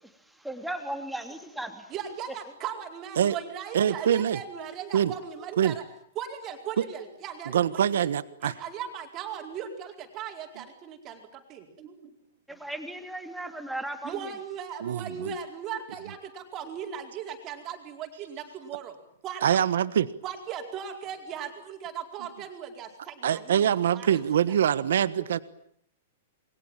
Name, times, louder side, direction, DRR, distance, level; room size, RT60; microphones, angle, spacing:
voice 1, 0.4-1.9 12.5-14.3, right 1 dB, ahead, 5 dB, 3.0 m, -36 dB
voice 2, 1.9-5.8 6.1-8.1 8.4-12.1 12.5-12.6 14.0-18.9 19.2-19.6 20.2-24.2 25.2-25.4, right 8 dB, 25° right, 4 dB, 4.5 m, -38 dB
voice 3, 3.7-4.4 4.9-5.1 5.6-5.7 7.5-8.5 14.8-15.3 19.4-20.1 23.2-25.4, right 9 dB, 80° right, 15 dB, 1.4 m, -24 dB
28.5 x 23.0 x 9.0 m, 0.67 s
supercardioid pair, 170°, 0 cm